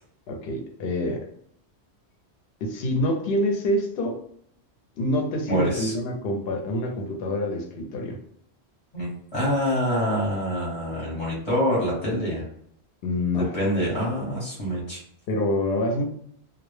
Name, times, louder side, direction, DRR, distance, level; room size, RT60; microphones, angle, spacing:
voice 1, 0.3-1.3 2.6-4.2 5.0-8.2 13.0-13.6 15.3-16.0, left 1 dB, 65° left, 2 dB, 0.8 m, -26 dB
voice 2, 5.5-5.9 8.9-12.5 13.4-15.0, equal, 35° left, -6 dB, 0.9 m, -26 dB
2.1 x 2.0 x 3.0 m, 0.66 s
omnidirectional pair, 1.1 m